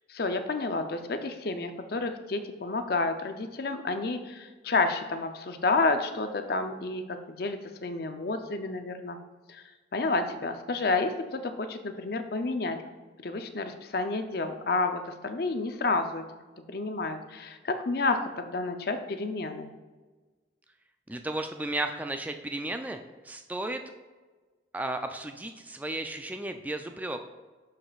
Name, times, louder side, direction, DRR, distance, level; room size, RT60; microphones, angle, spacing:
voice 1, 0.1-9.2 9.5-9.6 9.9-12.8 13.2-16.2 16.7-19.7, left 3 dB, 55° left, 7 dB, 0.5 m, -30 dB
voice 2, 21.1-23.0 23.2-23.8 24.7-27.2, right 1 dB, 10° right, 6 dB, 0.3 m, -34 dB
11.5 x 5.0 x 2.4 m, 1.3 s
head